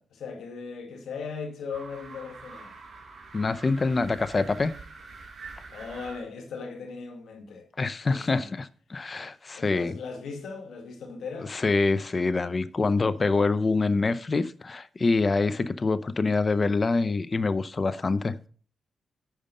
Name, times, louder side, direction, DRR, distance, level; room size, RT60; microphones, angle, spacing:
voice 1, 0.0-2.7 5.7-7.7 8.1-8.5 9.5-11.5, left 5 dB, 85° left, 1.9 m, -38 dB
sound 1, 1.7-6.2, right 4 dB, 65° right, 4.7 m, -45 dB
voice 2, 3.3-4.7 7.8-9.9 11.5-18.3, left 3 dB, 35° left, 0.6 m, -25 dB
9.0 x 5.1 x 5.5 m
cardioid pair, 80°, 0 cm